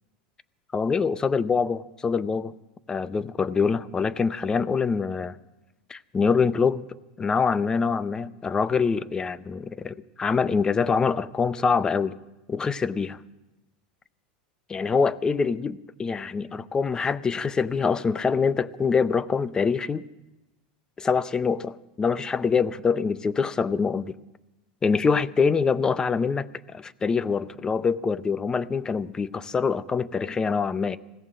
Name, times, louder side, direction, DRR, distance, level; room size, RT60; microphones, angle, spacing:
voice 1, 0.7-2.5 2.9-5.4 5.9-6.9 7.2-12.1 12.5-13.2 14.7-20.0 21.0-24.2 24.8-31.0, left 5 dB, 15° left, 17 dB, 0.5 m, -25 dB
20.5 x 16.5 x 3.8 m, 1.1 s
supercardioid pair, 135°, 5 cm